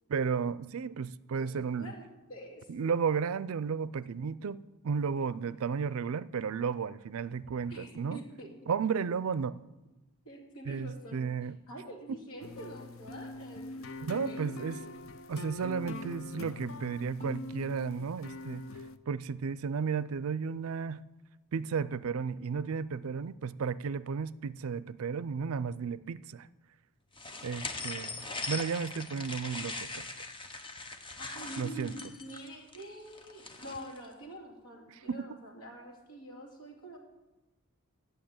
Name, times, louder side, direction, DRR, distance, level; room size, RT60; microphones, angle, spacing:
voice 1, 0.1-1.9 2.7-8.2 8.7-9.6 10.7-11.6 14.0-14.8 15.3-18.6 19.1-21.0 21.5-26.5 27.4-28.2 28.5-30.3 31.6-31.9 35.1-35.2, right 6 dB, 75° right, 0.4 m, -33 dB
voice 2, 1.8-2.9 7.7-8.5 10.2-11.2 11.7-14.9 31.2-37.0, right 1 dB, 80° left, 2.7 m, -46 dB
sound 1, 12.4-19.0, left 2 dB, 65° left, 0.6 m, -43 dB
sound 2, 27.2-34.0, left 3 dB, 20° left, 0.8 m, -41 dB
10.5 x 6.9 x 8.7 m
head